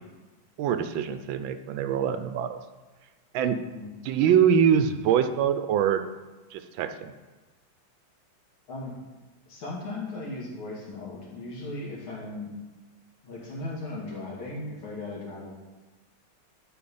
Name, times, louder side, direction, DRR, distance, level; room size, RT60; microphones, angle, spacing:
voice 1, 0.6-2.6 3.3-3.6 4.0-6.0 6.5-7.1, right 8 dB, 75° right, 9 dB, 1.3 m, -24 dB
voice 2, 9.5-12.5 13.2-15.5, left 2 dB, 80° left, -4 dB, 3.0 m, -37 dB
11.5 x 4.4 x 5.4 m, 1.2 s
omnidirectional pair, 2.2 m